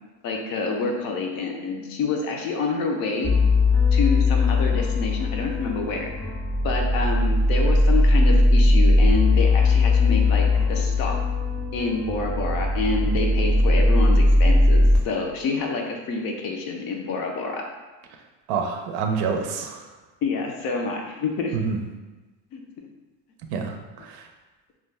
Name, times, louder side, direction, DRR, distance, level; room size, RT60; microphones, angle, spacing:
voice 1, 0.2-3.4 3.9-6.1 6.6-11.2 11.7-17.6 20.2-21.5 22.5-22.6, left 4 dB, 55° left, 2 dB, 0.5 m, -27 dB
sound 1, 3.2-15.0, left 2 dB, ahead, 0.3 m, -19 dB
voice 2, 18.5-19.8 21.5-21.8 23.5-24.2, right 5 dB, 65° right, 4 dB, 0.5 m, -27 dB
2.4 x 2.2 x 3.2 m, 1.2 s
cardioid pair, 120°, 42 cm